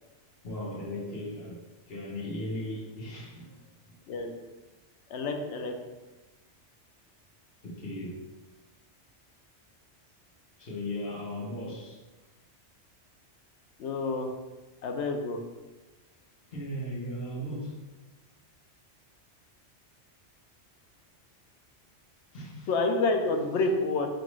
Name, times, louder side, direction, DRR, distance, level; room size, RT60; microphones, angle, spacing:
voice 1, 0.4-3.6 3.9-4.0 7.6-8.2 10.6-12.0 16.5-17.8 22.3-22.7, left 1 dB, 55° left, -4 dB, 1.1 m, -37 dB
voice 2, 5.1-5.7 13.8-14.3 14.8-15.4 22.7-24.1, left 3 dB, 75° left, 4 dB, 0.8 m, -28 dB
5.2 x 2.5 x 3.1 m, 1.1 s
omnidirectional pair, 1.2 m